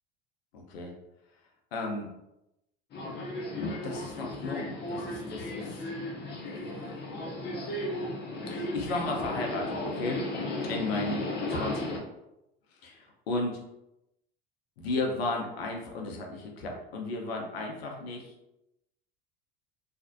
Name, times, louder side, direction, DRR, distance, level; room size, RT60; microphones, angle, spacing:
voice 1, 0.5-0.9 1.7-2.1 3.8-5.8 8.5-10.2 10.7-12.0 12.8-13.6 14.8-18.3, left 2 dB, 75° left, 1 dB, 0.7 m, -34 dB
Subway metro underground, 2.9-12.0, left 1 dB, 35° left, 0.7 m, -35 dB
2.5 x 2.0 x 2.5 m, 0.87 s
hypercardioid pair, 75°, 31 cm